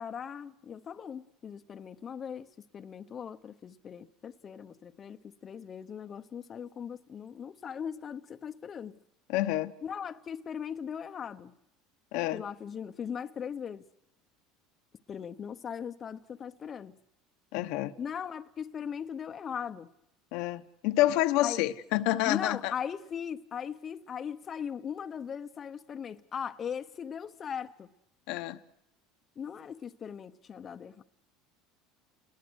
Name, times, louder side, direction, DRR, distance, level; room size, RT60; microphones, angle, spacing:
voice 1, 0.0-2.5 2.7-9.0 9.8-11.5 12.3-13.9 15.1-17.0 18.0-19.9 21.4-21.6 22.3-27.9 29.4-31.0, left 7 dB, 35° left, 0.9 m, -39 dB
voice 2, 9.3-9.7 12.1-12.4 17.5-17.9 20.3-22.7 28.3-28.6, left 15 dB, 70° left, 1.0 m, -28 dB
29.5 x 20.5 x 6.3 m
supercardioid pair, 115°, 0 cm